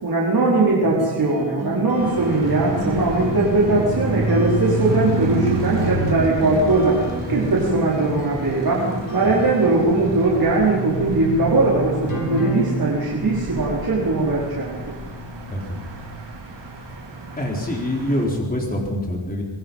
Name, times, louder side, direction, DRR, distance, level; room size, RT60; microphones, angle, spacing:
voice 1, 0.0-7.0 7.3-15.0, right 2 dB, 55° right, -5 dB, 4.8 m, -20 dB
sound 1, 0.8-9.7 12.1-12.6, equal, 45° left, 7.5 m, -31 dB
sound 2, 2.0-18.3, right 2 dB, 70° right, 4.5 m, -29 dB
voice 2, 17.4-19.4, left 1 dB, 20° left, -1 dB, 4.3 m, -25 dB
26.5 x 23.0 x 5.7 m, 1.2 s
wide cardioid pair, 150°, 44 cm